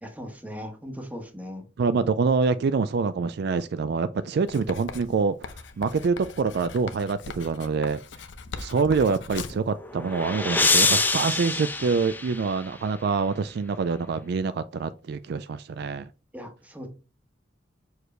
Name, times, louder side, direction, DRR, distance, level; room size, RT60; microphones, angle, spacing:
voice 1, 0.0-1.6 16.3-16.9, equal, 10° right, 1.2 m, -38 dB
voice 2, 1.8-5.4 5.8-8.0 8.6-16.1, right 4 dB, 60° right, 0.4 m, -26 dB
Writing, 4.5-9.7, left 4 dB, 70° left, 0.7 m, -40 dB
sound 1, 9.5-12.9, left 3 dB, 10° left, 0.6 m, -25 dB
6.3 x 4.7 x 3.2 m
head